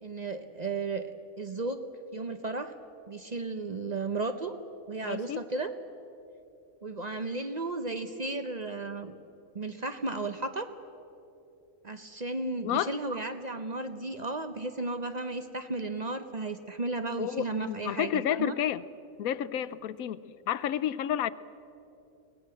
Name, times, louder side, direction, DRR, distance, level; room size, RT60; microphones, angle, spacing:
voice 1, 0.0-1.1 1.4-1.8 2.1-2.7 3.1-4.5 4.9-5.7 6.8-9.2 9.5-10.7 11.8-18.5, right 3 dB, 40° right, 8 dB, 0.7 m, -34 dB
voice 2, 5.0-5.4 12.6-12.9 17.2-18.9 19.2-21.3, left 10 dB, 85° left, 16 dB, 1.1 m, -31 dB
23.0 x 18.0 x 7.7 m, 2.8 s
omnidirectional pair, 1.4 m